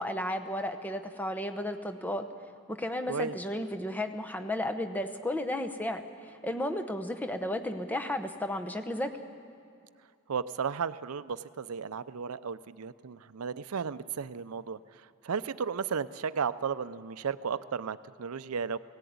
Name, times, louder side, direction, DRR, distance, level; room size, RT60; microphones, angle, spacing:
voice 1, 0.0-2.2 2.7-9.1, left 1 dB, 10° left, 7 dB, 0.9 m, -33 dB
voice 2, 10.3-18.8, right 6 dB, 85° right, 14 dB, 0.5 m, -34 dB
18.0 x 17.0 x 9.4 m, 2.5 s
head